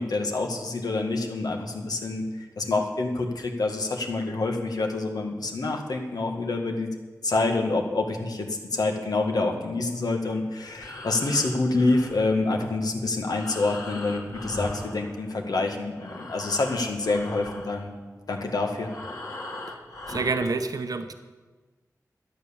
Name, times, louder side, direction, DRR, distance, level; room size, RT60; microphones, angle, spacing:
voice 1, 0.0-6.9 7.2-17.9 18.3-18.9, left 3 dB, 85° left, 3 dB, 1.8 m, -27 dB
Breathing, 10.6-15.6 15.9-20.6, left 1 dB, 65° left, 2.6 m, -40 dB
voice 2, 20.1-21.1, right 4 dB, 70° right, 8 dB, 0.9 m, -28 dB
12.5 x 9.2 x 7.1 m, 1.3 s
wide cardioid pair, 70°, 6 cm